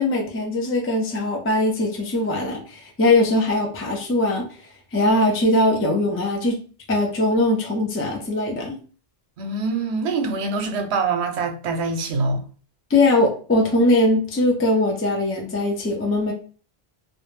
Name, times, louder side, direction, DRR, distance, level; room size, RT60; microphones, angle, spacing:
voice 1, 0.0-4.4 4.9-6.6 6.9-8.8 12.9-16.3, left 2 dB, 20° left, 0.3 m, -21 dB
voice 2, 9.4-12.4, right 3 dB, 90° right, 0.9 m, -24 dB
2.3 x 2.1 x 3.0 m
omnidirectional pair, 1.1 m